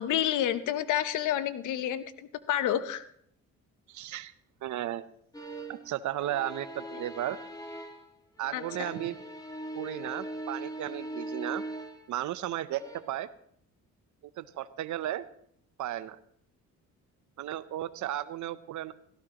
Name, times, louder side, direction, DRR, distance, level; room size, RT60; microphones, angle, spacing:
voice 1, 0.0-3.0 8.5-8.9, left 11 dB, 80° left, 14 dB, 0.8 m, -29 dB
voice 2, 3.9-4.3 4.6-5.0 5.7-7.4 8.4-9.2 9.7-11.6 12.1-13.3 14.4-15.2 15.8-16.2 17.4-18.9, right 13 dB, 75° right, 15 dB, 0.7 m, -34 dB
sound 1, 5.3-5.9 6.2-8.1 8.4-12.1 12.7-13.0, right 1 dB, 10° left, 2.1 m, -40 dB
17.0 x 15.5 x 2.9 m, 0.66 s
cardioid pair, 90°, 30 cm